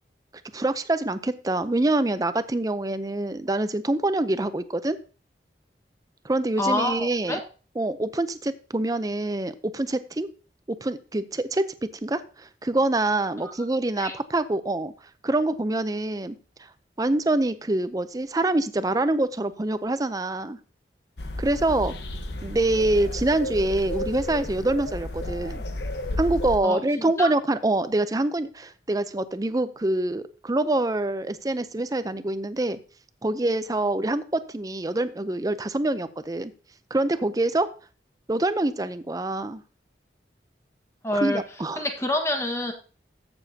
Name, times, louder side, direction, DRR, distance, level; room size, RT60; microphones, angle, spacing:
voice 1, 0.5-5.0 6.2-7.4 7.8-10.3 10.7-14.9 15.2-16.4 17.0-20.6 21.4-22.0 22.4-25.6 26.2-32.8 33.2-36.5 36.9-37.7 38.3-39.6 41.1-41.9, right 2 dB, 20° right, 12 dB, 0.5 m, -25 dB
voice 2, 6.6-7.4 14.0-14.2 26.6-26.8 27.2-27.3 41.0-41.4 41.8-42.7, left 1 dB, 15° left, 4 dB, 1.4 m, -26 dB
sound 1, 21.2-26.6, left 1 dB, 75° left, 1.1 m, -32 dB
13.5 x 7.1 x 2.8 m, 0.37 s
head